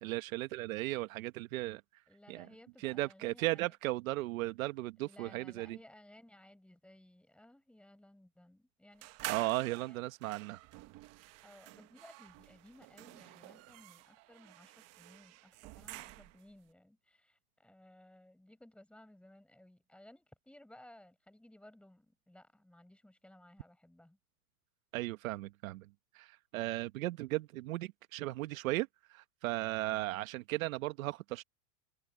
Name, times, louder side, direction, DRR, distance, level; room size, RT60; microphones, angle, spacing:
voice 1, 0.0-1.8 2.3-2.5 2.8-5.8 9.3-10.6 24.9-25.8 26.1-31.4, right 18 dB, 65° right, 1.3 m, -36 dB
voice 2, 2.1-3.7 5.0-10.0 11.4-24.2 29.9-30.2, left 1 dB, ahead, 5.1 m, -59 dB
sound 1, 9.0-16.5, right 19 dB, 35° right, 1.1 m, -48 dB
supercardioid pair, 145°, 44 cm